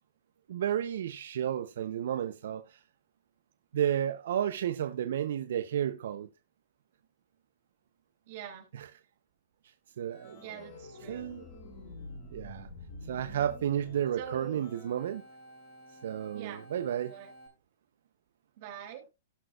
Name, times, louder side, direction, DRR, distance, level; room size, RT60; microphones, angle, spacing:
voice 1, 0.5-2.8 3.7-6.3 8.7-8.9 10.0-10.4 11.1-11.4 12.3-12.7 13.1-15.2 16.0-17.1, right 10 dB, 70° right, 0.8 m, -32 dB
voice 2, 8.3-8.7 10.4-11.3 14.2-14.6 16.3-16.7 17.1-17.3 18.6-19.0, right 10 dB, 55° right, 3.1 m, -44 dB
Organ, 10.1-17.5, left 2 dB, 45° left, 6.5 m, -49 dB
17.5 x 6.1 x 2.5 m
hypercardioid pair, 125°, 0 cm